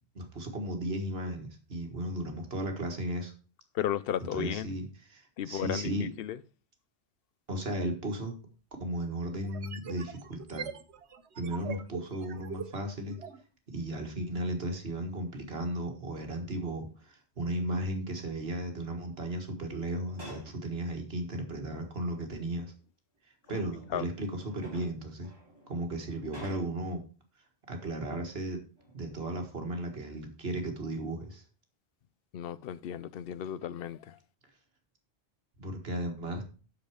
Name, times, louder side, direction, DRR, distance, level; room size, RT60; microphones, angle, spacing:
voice 1, 0.2-3.3 4.2-6.1 7.5-8.4 8.8-10.7 11.4-13.2 13.7-22.7 23.5-25.3 25.7-27.0 27.7-28.6 28.9-31.4 35.6-36.4, right 1 dB, 65° right, 1.9 m, -35 dB
voice 2, 3.7-4.7 5.4-6.4 23.5-23.6 23.9-24.1 32.3-34.2, left 10 dB, 65° left, 0.7 m, -34 dB
sound 1, 8.0-8.1 9.4-13.4, right 6 dB, 85° right, 1.1 m, -42 dB
sound 2, 19.9-20.6 21.8-21.9 23.1-26.9 28.7-29.2 29.6-30.4 30.9-31.1, equal, 20° right, 4.8 m, -51 dB
7.8 x 6.7 x 4.9 m
omnidirectional pair, 1.1 m